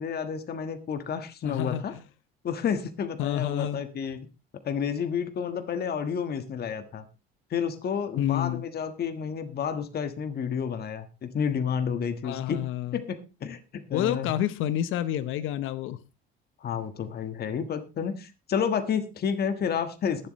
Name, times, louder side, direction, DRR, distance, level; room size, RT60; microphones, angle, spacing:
voice 1, 0.0-1.9 2.4-4.2 4.6-7.0 7.5-12.6 12.9-14.3 16.6-20.3, left 7 dB, 50° left, 1.5 m, -30 dB
voice 2, 1.4-1.8 3.2-3.8 8.2-8.6 12.2-13.0 13.9-16.0, left 11 dB, 75° left, 0.9 m, -29 dB
22.0 x 7.7 x 3.1 m
cardioid pair, 90°, 21 cm